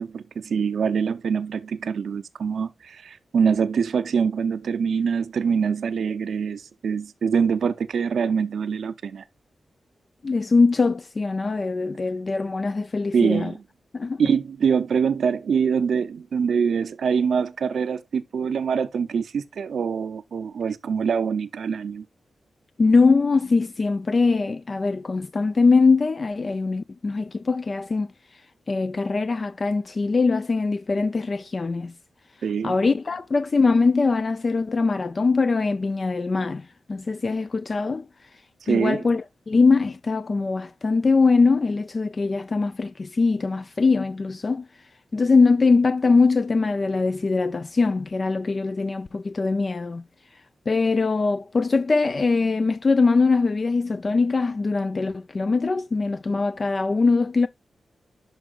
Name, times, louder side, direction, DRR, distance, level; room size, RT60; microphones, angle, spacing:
voice 1, 0.0-9.2 13.1-13.6 14.2-22.1 32.4-32.8 38.6-39.1, right 6 dB, 80° right, 0.5 m, -24 dB
voice 2, 10.2-13.5 13.9-14.2 22.8-28.1 28.7-31.9 32.6-38.1 38.7-44.7 45.1-50.0 50.7-57.5, left 4 dB, 40° left, 0.4 m, -22 dB
11.0 x 4.7 x 2.4 m
wide cardioid pair, 90°, 0 cm